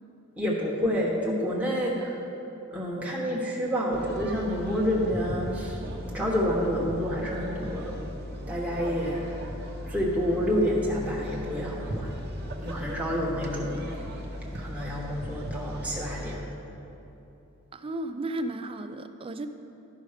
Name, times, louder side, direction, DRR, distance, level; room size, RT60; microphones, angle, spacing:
voice 1, 0.4-2.2 2.7-5.8 6.1-8.0 8.5-9.5 9.9-12.1 12.6-13.9 14.5-16.4, equal, 5° right, -5 dB, 1.0 m, -28 dB
sound 1, 3.9-16.4, equal, 50° right, 0.9 m, -37 dB
voice 2, 17.7-19.5, right 1 dB, 25° right, 9 dB, 0.4 m, -34 dB
12.0 x 5.3 x 4.9 m, 3.0 s
head